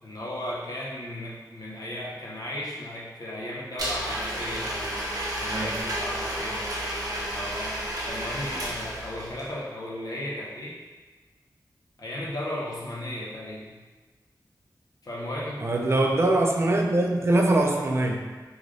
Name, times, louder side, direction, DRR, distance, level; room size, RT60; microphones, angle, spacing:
voice 1, 0.0-5.0 5.4-6.7 7.3-10.8 12.0-13.7 15.0-15.6, left 1 dB, 60° left, -5 dB, 0.7 m, -35 dB
Domestic sounds home sounds, 3.8-9.4, right 1 dB, 60° right, 0.7 m, -31 dB
voice 2, 5.5-5.9 15.6-18.3, right 2 dB, 40° right, 1 dB, 0.3 m, -23 dB
3.1 x 2.4 x 2.5 m, 1.3 s
wide cardioid pair, 80°, 7 cm